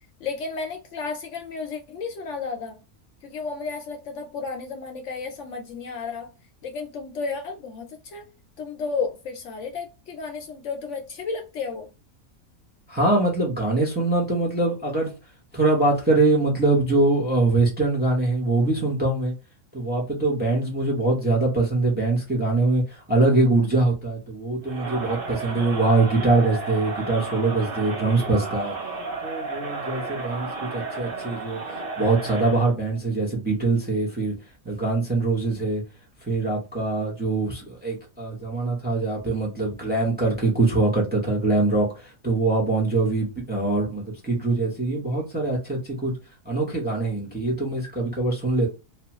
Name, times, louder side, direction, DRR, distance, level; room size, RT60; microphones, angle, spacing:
voice 1, 0.2-2.8 3.2-6.3 6.6-8.3 8.6-11.9, left 4 dB, 70° left, 0.8 m, -32 dB
voice 2, 12.9-15.1 15.5-19.3 19.7-28.7 29.2-34.3 34.6-35.8 36.2-46.2 46.4-48.7, right 2 dB, 10° right, 0.7 m, -23 dB
Crowd, 24.6-32.7, right 3 dB, 50° right, 0.9 m, -33 dB
2.8 x 2.3 x 2.9 m
omnidirectional pair, 1.4 m